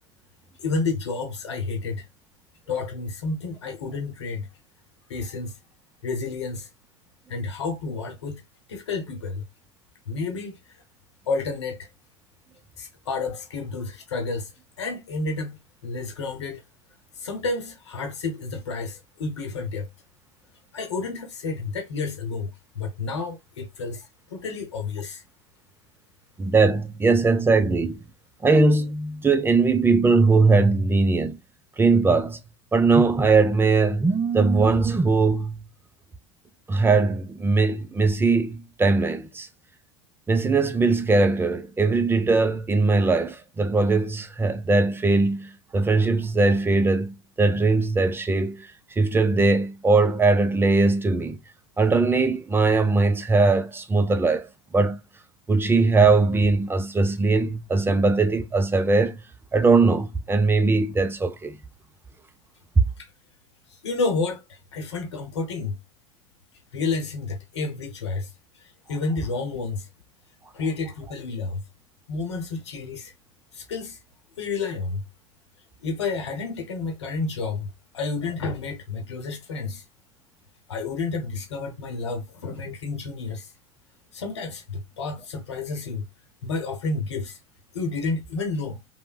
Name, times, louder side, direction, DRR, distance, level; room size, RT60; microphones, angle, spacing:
voice 1, 0.6-2.0 2.7-4.5 5.1-5.5 6.0-6.7 7.3-8.4 8.7-9.4 10.1-10.6 11.3-11.9 12.8-14.5 14.8-16.6 17.1-19.9 20.7-25.2 63.0-63.1 63.7-65.8 66.7-69.9 70.5-71.6 72.1-73.1 73.5-74.0 74.4-75.0 75.8-77.7 77.9-79.8 80.7-83.5 84.1-86.0 86.4-87.4 87.7-88.8, left 4 dB, 90° left, 0.8 m, -30 dB
voice 2, 26.4-28.0 28.4-31.4 31.8-32.4 32.7-35.6 36.7-39.5 40.3-51.4 51.8-55.0 55.5-59.2 59.5-61.6 62.8-62.9, right 3 dB, 15° right, 0.5 m, -20 dB
3.2 x 2.1 x 2.2 m
hypercardioid pair, 90°, 14 cm